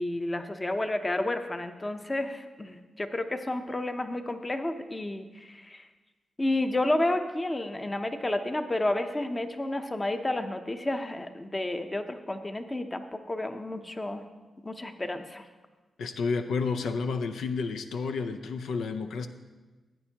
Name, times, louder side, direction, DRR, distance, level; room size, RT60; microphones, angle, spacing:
voice 1, 0.0-5.9 6.4-14.2 14.6-15.5, left 1 dB, 20° left, 8 dB, 0.7 m, -31 dB
voice 2, 16.0-19.3, left 4 dB, 85° left, 8 dB, 0.5 m, -30 dB
15.5 x 9.0 x 2.9 m, 1.3 s
cardioid pair, 80°, 0 cm